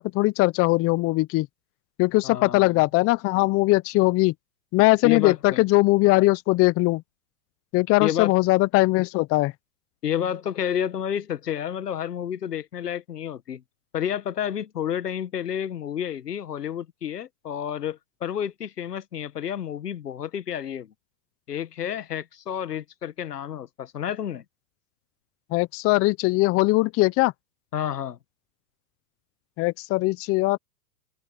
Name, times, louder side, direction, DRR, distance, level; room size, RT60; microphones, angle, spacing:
voice 1, 0.0-1.5 2.0-4.3 4.7-7.0 7.7-9.5 25.5-27.3 29.6-30.6, left 21 dB, 30° left, 0.9 m, -20 dB
voice 2, 2.2-2.8 5.0-5.6 8.0-8.3 10.0-13.6 13.9-20.9 21.5-24.4 27.7-28.2, left 9 dB, 85° left, 1.7 m, -30 dB
open air
hypercardioid pair, 115°, 46 cm